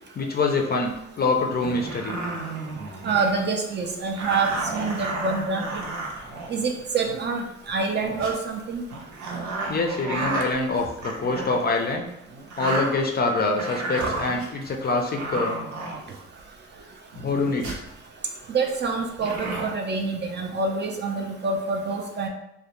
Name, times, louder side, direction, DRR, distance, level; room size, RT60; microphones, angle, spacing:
voice 1, 0.1-2.2 9.7-12.1 12.6-15.6 17.1-17.7, left 3 dB, 35° left, 2 dB, 0.4 m, -25 dB
sound 1, 1.6-3.5 4.2-7.2 7.8-8.3 8.9-11.7 12.3-13.2 13.6-14.7 15.2-16.4 17.1-17.9 19.2-19.7, right 2 dB, 70° right, 0.7 m, -32 dB
voice 2, 3.0-5.8 6.5-8.8 18.5-22.3, right 4 dB, 35° right, 2 dB, 0.4 m, -26 dB
2.3 x 2.1 x 2.9 m, 0.82 s
cardioid pair, 90°, 30 cm